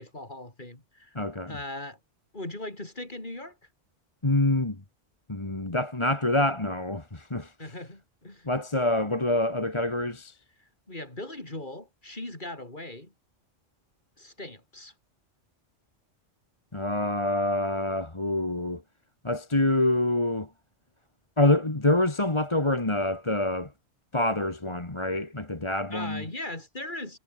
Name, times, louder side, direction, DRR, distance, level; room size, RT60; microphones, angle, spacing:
voice 1, 0.0-1.1 1.5-2.0 2.3-3.6 7.6-8.5 10.6-13.1 14.2-14.9 25.9-27.2, left 1 dB, 40° left, 4.9 m, -39 dB
voice 2, 1.2-1.6 4.2-4.8 5.3-7.5 8.5-10.4 16.7-18.8 19.2-20.5 21.4-23.7 24.1-26.2, left 1 dB, 25° left, 2.0 m, -26 dB
omnidirectional pair, 1.2 m